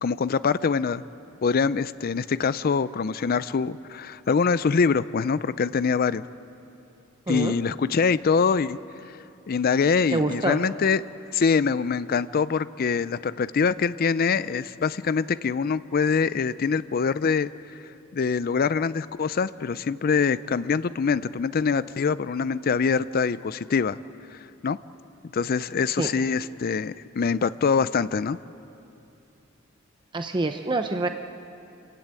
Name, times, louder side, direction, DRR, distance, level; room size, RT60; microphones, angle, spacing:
voice 1, 0.0-1.0 1.4-6.2 7.3-8.8 9.5-11.0 11.3-17.5 18.1-24.0 24.3-24.4 24.6-24.8 25.3-28.4, left 5 dB, 45° left, 15 dB, 0.4 m, -24 dB
voice 2, 10.1-10.6 26.0-26.1 30.1-31.1, right 2 dB, 25° right, 6 dB, 0.7 m, -26 dB
26.5 x 15.5 x 9.0 m, 2.7 s
head